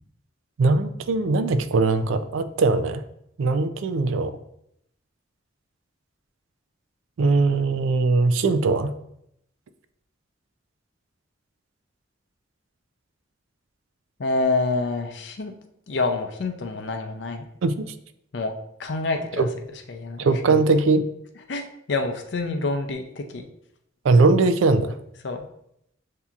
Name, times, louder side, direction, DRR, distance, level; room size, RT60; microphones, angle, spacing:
voice 1, 0.6-3.0 3.4-4.3 7.2-8.9 17.6-17.9 19.4-19.5 20.2-21.0 24.0-24.9, right 3 dB, 85° right, 11 dB, 0.4 m, -20 dB
voice 2, 14.2-15.5 15.9-17.5 18.3-18.5 18.8-19.5 19.9-20.3 21.5-23.4 25.2-25.4, left 3 dB, 65° left, 6 dB, 0.5 m, -27 dB
6.9 x 2.8 x 2.4 m, 0.76 s
head